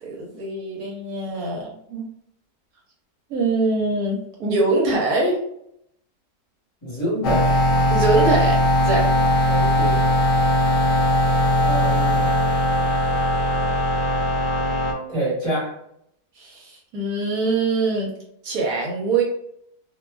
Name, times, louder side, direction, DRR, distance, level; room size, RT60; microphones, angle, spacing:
voice 1, 0.0-2.0 3.3-5.4 7.9-9.0 16.4-18.1 18.4-19.2, right 3 dB, 65° right, -2 dB, 1.1 m, -23 dB
voice 2, 6.8-7.6 9.4-10.1 11.6-12.4 15.1-15.8, right 1 dB, 20° left, -8 dB, 0.9 m, -26 dB
sound 1, 7.2-14.9, equal, 85° left, 1.2 m, -19 dB
2.8 x 2.3 x 2.2 m, 0.72 s
omnidirectional pair, 1.8 m